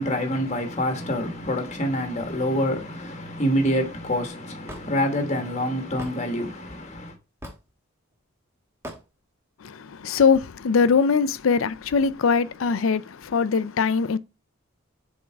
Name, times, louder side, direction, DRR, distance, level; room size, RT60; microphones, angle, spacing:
voice 1, 0.0-7.2, equal, 35° left, 1.3 m, -26 dB
Hammer / Wood, 4.7-4.9 6.0-6.2 7.4-7.7 8.8-9.0, equal, 15° right, 1.2 m, -38 dB
voice 2, 9.6-14.2, left 5 dB, 70° left, 0.5 m, -22 dB
7.2 x 3.7 x 4.6 m
head